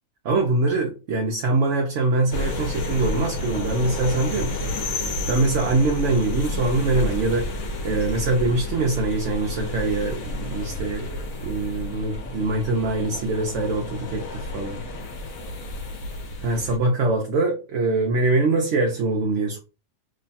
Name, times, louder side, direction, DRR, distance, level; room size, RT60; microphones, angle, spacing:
voice 1, 0.2-4.7 5.3-7.5 7.8-11.1 11.4-14.8 16.4-19.6, right 2 dB, 65° right, 1.0 m, -23 dB
sound 1, 2.3-16.8, left 2 dB, 80° left, 1.2 m, -30 dB
3.0 x 2.2 x 4.0 m
omnidirectional pair, 1.4 m